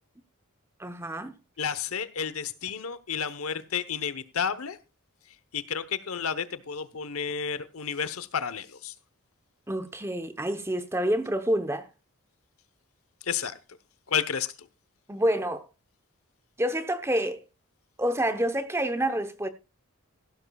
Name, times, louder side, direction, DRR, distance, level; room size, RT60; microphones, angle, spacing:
voice 1, 0.8-1.3 9.7-11.9 15.1-15.7 16.6-17.4 18.0-19.5, right 1 dB, 10° right, 0.8 m, -28 dB
voice 2, 1.6-4.8 5.5-8.9 13.3-13.6 14.1-14.7, left 7 dB, 75° left, 1.0 m, -31 dB
15.5 x 12.0 x 2.3 m
head